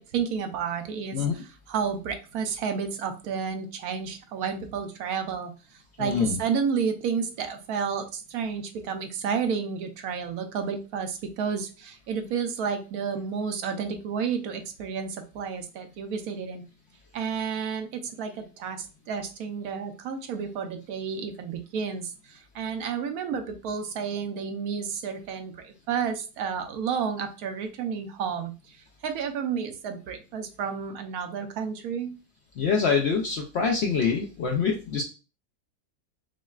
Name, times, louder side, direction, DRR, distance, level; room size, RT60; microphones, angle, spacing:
voice 1, 0.0-16.6 17.1-28.8 29.0-32.1, right 6 dB, 75° right, 6 dB, 1.0 m, -31 dB
voice 2, 6.0-6.4 32.6-35.0, left 5 dB, 70° left, 2 dB, 0.6 m, -25 dB
6.1 x 2.2 x 2.3 m, 0.32 s
omnidirectional pair, 1.7 m